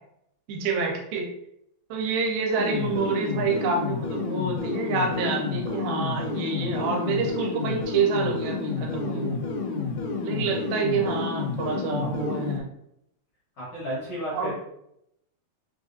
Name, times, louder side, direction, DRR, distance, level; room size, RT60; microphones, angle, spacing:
voice 1, 0.5-1.3 1.9-9.4 10.2-12.7 14.3-14.5, right 4 dB, 90° right, 1 dB, 2.5 m, -27 dB
sound 1, 2.6-12.6, left 4 dB, 80° left, 1.9 m, -30 dB
voice 2, 13.6-14.5, equal, 55° left, -8 dB, 1.7 m, -32 dB
5.6 x 2.4 x 2.6 m, 0.78 s
omnidirectional pair, 4.2 m